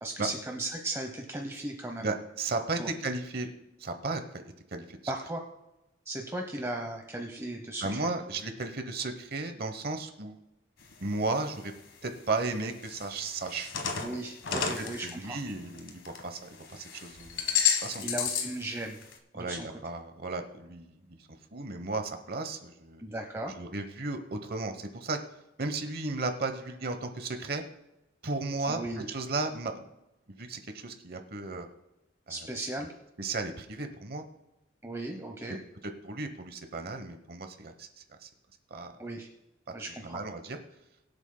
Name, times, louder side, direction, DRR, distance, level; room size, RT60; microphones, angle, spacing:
voice 1, 0.0-2.1 2.8-2.9 5.1-5.4 6.1-8.1 14.0-15.4 18.0-19.0 19.3-19.7 23.0-23.6 28.7-29.0 32.3-32.9 34.8-35.6 39.0-39.3 39.7-40.2, right 1 dB, 15° right, 3 dB, 0.8 m, -36 dB
voice 2, 2.0-3.5 3.8-4.4 4.7-5.0 7.8-10.4 11.0-11.7 12.0-13.7 15.0-18.0 19.3-23.0 23.6-25.2 25.6-27.6 28.2-29.8 30.3-31.7 33.2-34.2 35.8-38.3 38.7-38.9 40.0-40.6, right 3 dB, 50° right, 7 dB, 1.0 m, -35 dB
sound 1, 10.8-11.4 11.9-12.0 12.7-16.2 16.5-18.6 18.9-19.1, left 7 dB, 85° left, 1.4 m, -32 dB
23.5 x 8.1 x 2.2 m, 0.93 s
head